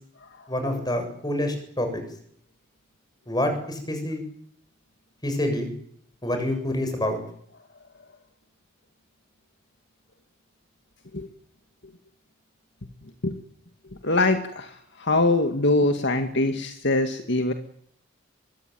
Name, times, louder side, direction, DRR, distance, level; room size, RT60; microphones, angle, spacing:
voice 1, 0.5-2.0 3.3-4.2 5.2-5.7 6.2-7.2, left 1 dB, 20° left, 6 dB, 7.5 m, -27 dB
voice 2, 14.0-17.5, left 2 dB, 60° left, 6 dB, 2.1 m, -23 dB
23.5 x 23.5 x 9.4 m, 0.67 s
head